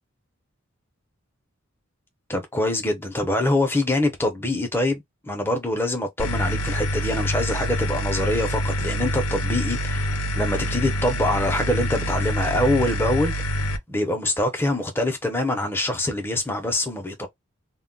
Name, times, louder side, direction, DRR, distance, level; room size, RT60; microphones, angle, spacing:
voice 1, 2.3-10.1 10.3-13.4 13.7-17.3, left 1 dB, 10° left, 0.5 m, -24 dB
sound 1, 6.2-13.8, equal, 80° left, 0.5 m, -26 dB
2.1 x 2.1 x 3.7 m
head